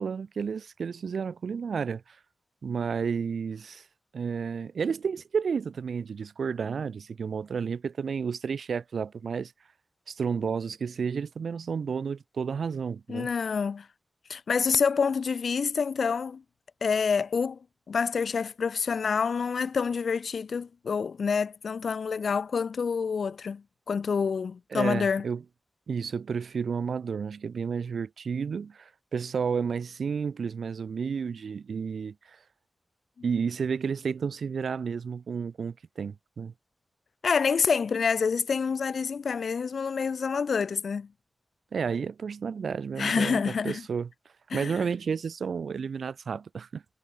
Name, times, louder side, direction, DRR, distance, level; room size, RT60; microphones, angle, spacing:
voice 1, 0.0-2.2 2.6-3.8 4.1-9.5 10.1-13.3 24.7-25.4 25.9-32.4 33.2-36.5 41.7-44.1 44.5-46.8, right 6 dB, 85° right, 0.4 m, -31 dB
voice 2, 13.1-13.9 14.3-16.4 16.8-17.6 17.9-25.3 37.2-41.1 43.0-43.8 44.5-44.8, left 5 dB, 75° left, 0.9 m, -27 dB
wide cardioid pair, 100°, 0 cm